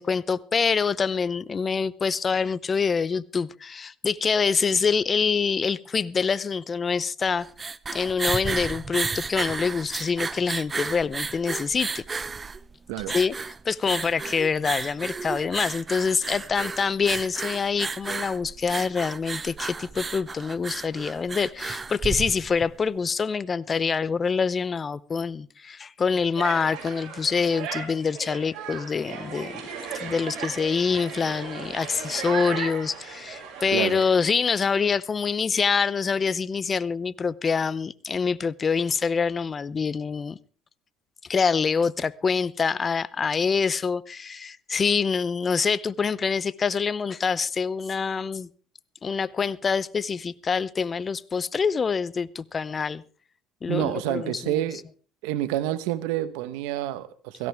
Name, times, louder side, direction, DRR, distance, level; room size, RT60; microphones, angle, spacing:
voice 1, 0.0-7.5 7.9-12.0 13.1-13.3 13.6-29.6 30.0-40.4 41.3-48.5 49.0-53.0 53.6-54.6, left 5 dB, 30° left, 0.7 m, -25 dB
sound 1, 7.3-22.7, right 4 dB, 25° right, 0.7 m, -33 dB
sound 2, 26.4-34.0, right 7 dB, 65° right, 6.5 m, -36 dB
voice 2, 33.7-34.0 53.7-54.8 55.2-57.5, right 13 dB, 85° right, 1.2 m, -28 dB
17.0 x 16.5 x 3.5 m
supercardioid pair, 105°, 0 cm